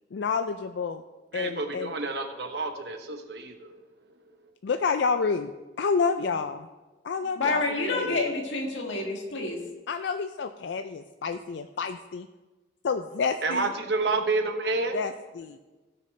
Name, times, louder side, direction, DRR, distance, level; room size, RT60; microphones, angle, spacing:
voice 1, 0.1-1.0 1.3-1.9 4.6-5.5 5.8-6.6 7.0-8.3 9.9-12.3 12.8-13.7 14.9-15.6, left 5 dB, 70° left, 8 dB, 0.4 m, -29 dB
voice 2, 1.3-3.8 13.4-15.0, right 3 dB, 60° right, 5 dB, 1.0 m, -29 dB
voice 3, 7.4-9.6, left 2 dB, 85° left, 1 dB, 1.9 m, -28 dB
16.0 x 6.6 x 3.3 m, 1.2 s
head